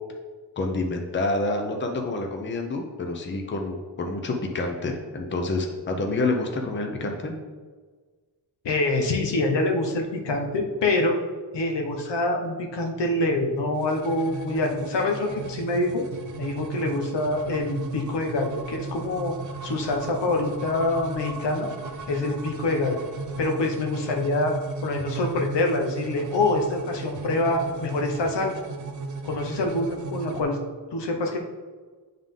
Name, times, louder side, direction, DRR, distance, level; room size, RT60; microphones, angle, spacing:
voice 1, 0.6-7.3, left 2 dB, 25° left, 3 dB, 0.7 m, -28 dB
voice 2, 8.6-11.2 11.5-16.0 16.4-19.4 19.6-21.7 22.1-23.0 23.4-24.5 24.8-28.5 29.2-30.6 30.9-31.4, left 2 dB, 85° left, 2 dB, 1.0 m, -25 dB
sound 1, 13.7-30.4, right 4 dB, 45° right, 0.6 m, -36 dB
9.2 x 3.7 x 3.7 m, 1.4 s
wide cardioid pair, 155°, 41 cm